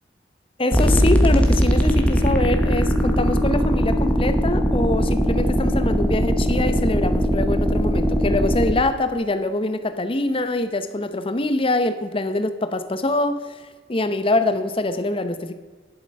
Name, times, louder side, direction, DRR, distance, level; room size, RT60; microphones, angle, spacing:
voice 1, 0.6-13.6 13.9-15.5, left 2 dB, 30° left, 9 dB, 0.8 m, -24 dB
sound 1, 0.7-8.7, equal, 5° left, 1.3 m, -20 dB
11.0 x 7.8 x 5.3 m, 1.3 s
head